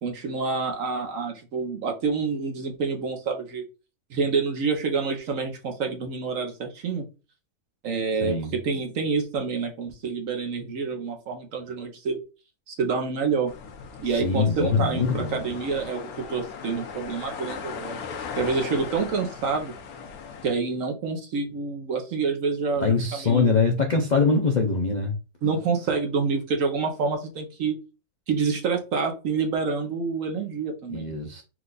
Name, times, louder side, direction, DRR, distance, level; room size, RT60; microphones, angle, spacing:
voice 1, 0.0-3.6 4.1-7.0 7.8-12.2 12.7-13.5 14.0-18.0 18.4-19.7 20.4-23.6 25.4-27.7 28.3-31.1, right 4 dB, 60° right, 1.2 m, -27 dB
sound 1, 13.5-20.5, left 6 dB, 75° left, 1.1 m, -38 dB
voice 2, 14.2-15.5 22.8-25.1 30.9-31.4, left 4 dB, 55° left, 0.5 m, -23 dB
4.5 x 2.4 x 3.9 m
omnidirectional pair, 1.6 m